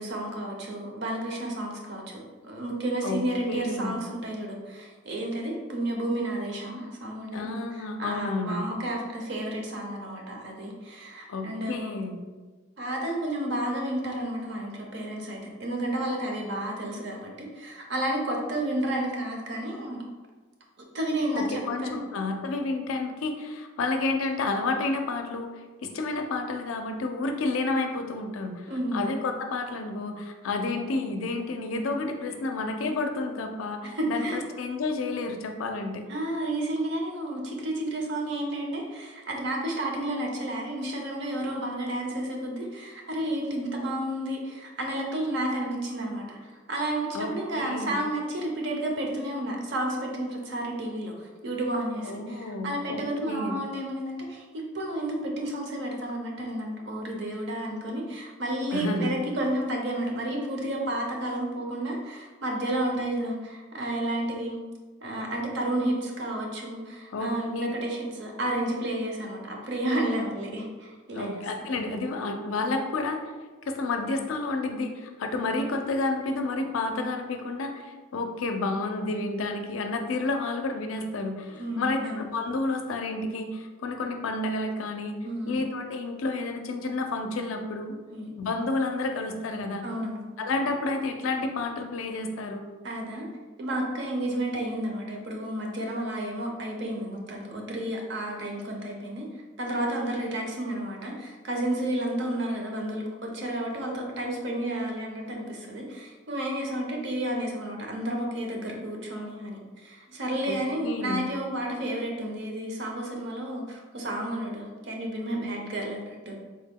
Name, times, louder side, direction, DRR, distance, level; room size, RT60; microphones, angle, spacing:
voice 1, 0.0-12.0 12.8-20.0 20.9-21.9 28.7-29.1 33.8-34.4 36.1-64.6 65.0-71.5 81.5-82.2 85.2-85.6 88.1-88.4 89.8-90.3 92.8-93.3 93.6-99.3 99.6-116.4, right 1 dB, 55° right, 0 dB, 0.6 m, -31 dB
voice 2, 3.0-4.0 7.3-8.6 11.3-12.1 21.3-36.0 47.1-47.3 47.6-48.0 52.1-53.6 58.7-59.2 67.1-67.7 71.1-73.2 73.6-85.2 85.5-88.0 88.4-89.8 90.4-92.6 110.5-111.3, left 3 dB, 70° left, 5 dB, 0.4 m, -30 dB
3.4 x 2.1 x 3.6 m, 1.3 s
head